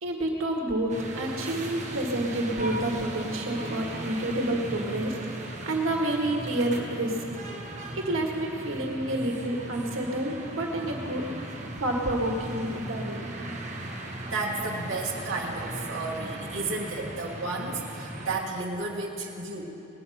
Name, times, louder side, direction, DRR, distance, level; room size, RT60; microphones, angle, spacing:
voice 1, 0.0-7.2 8.0-11.3 11.8-13.3, right 1 dB, 85° right, 1 dB, 1.8 m, -29 dB
sound 1, 0.9-18.4, right 1 dB, 35° right, 1.5 m, -37 dB
voice 2, 14.3-19.6, right 3 dB, 65° right, -4 dB, 1.5 m, -32 dB
19.5 x 9.3 x 5.8 m, 2.8 s
head